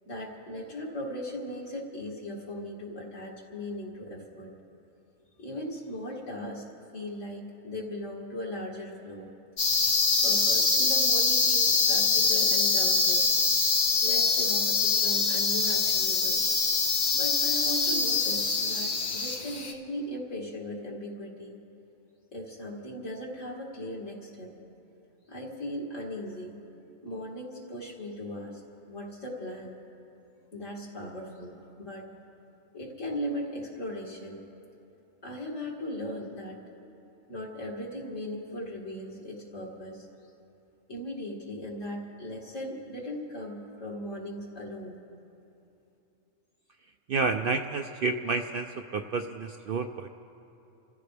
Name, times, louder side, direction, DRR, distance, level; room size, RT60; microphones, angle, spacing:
voice 1, 0.0-4.5 5.4-6.6 6.9-9.3 10.2-13.3 14.0-16.4 17.1-21.6 22.3-24.5 25.3-26.6 27.0-28.6 28.9-29.8 30.5-32.1 32.7-34.4 35.2-36.6 37.3-40.1 40.9-45.0, left 1 dB, 70° left, -3 dB, 2.8 m, -38 dB
sound 1, 9.6-19.7, left 4 dB, 90° left, 1.7 m, -24 dB
voice 2, 47.1-50.1, right 4 dB, 65° right, 5 dB, 0.6 m, -30 dB
29.5 x 14.5 x 3.4 m, 2.8 s
omnidirectional pair, 1.4 m